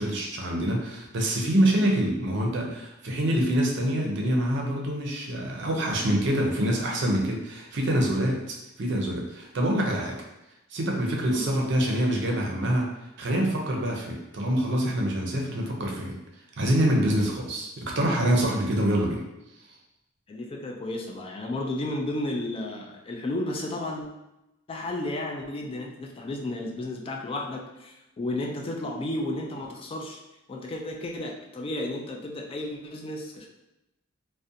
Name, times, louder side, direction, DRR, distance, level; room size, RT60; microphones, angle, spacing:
voice 1, 0.0-10.1 10.7-12.9 13.2-16.2 16.6-19.2, right 1 dB, 60° right, 0 dB, 0.5 m, -25 dB
voice 2, 20.3-24.1 24.7-30.2 30.5-33.5, left 1 dB, 30° left, 1 dB, 0.3 m, -33 dB
2.4 x 2.1 x 2.6 m, 0.93 s
head